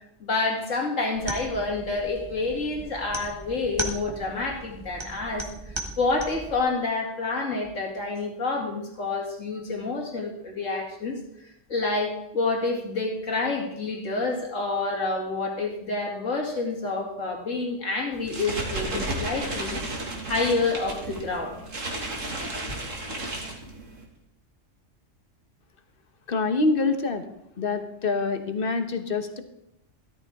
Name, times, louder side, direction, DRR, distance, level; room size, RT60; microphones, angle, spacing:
voice 1, 0.2-11.2 11.7-19.8 20.3-21.6, left 3 dB, 80° left, 0 dB, 2.9 m, -28 dB
sound 1, 1.2-6.6, right 1 dB, 20° right, 1.4 m, -37 dB
sound 2, 18.1-24.0, right 2 dB, 85° right, 2.5 m, -33 dB
voice 2, 26.3-27.2 27.6-29.4, left 3 dB, 45° left, 8 dB, 1.3 m, -25 dB
13.5 x 13.5 x 3.6 m, 0.82 s
omnidirectional pair, 1.3 m